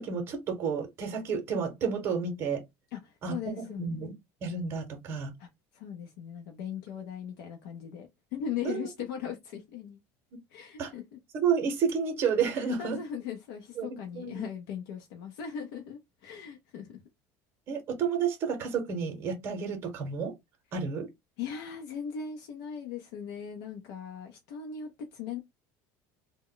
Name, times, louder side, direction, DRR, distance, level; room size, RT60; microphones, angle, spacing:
voice 1, 0.0-2.6 3.2-4.1 4.4-5.3 8.6-8.9 10.8-10.9 11.3-13.0 13.8-14.4 17.7-20.3 20.7-21.1, right 6 dB, 35° right, 0.8 m, -31 dB
voice 2, 2.9-4.0 5.4-10.0 10.5-11.2 12.6-17.0 21.4-25.4, left 7 dB, 85° left, 0.6 m, -39 dB
2.1 x 2.1 x 3.8 m
cardioid pair, 165°, 7 cm